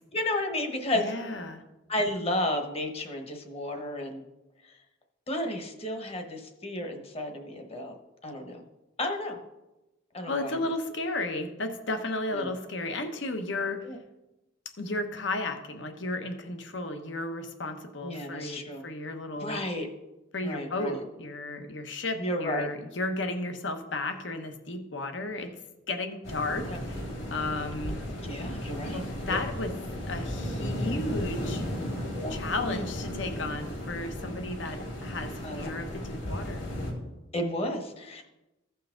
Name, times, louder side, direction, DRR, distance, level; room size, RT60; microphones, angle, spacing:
voice 1, 0.1-1.1 1.9-4.2 5.3-7.9 8.2-8.6 9.0-9.4 10.1-10.5 12.3-12.5 13.8-14.0 18.0-18.8 19.3-19.9 20.4-21.0 22.2-22.7 26.7-26.8 27.9-29.4 30.8-31.0 32.1-32.4 32.7-32.9 35.4-35.6 37.3-38.2, left 1 dB, 30° left, 4 dB, 1.1 m, -32 dB
voice 2, 0.9-1.6 10.3-13.9 14.8-19.6 20.3-25.5 25.9-27.0 27.3-28.0 28.9-29.8 30.1-31.6 32.3-36.6, left 2 dB, 70° left, 6 dB, 1.0 m, -34 dB
sound 1, 26.2-36.9, equal, 85° left, 3.4 m, -35 dB
15.0 x 5.6 x 3.8 m, 1.0 s
head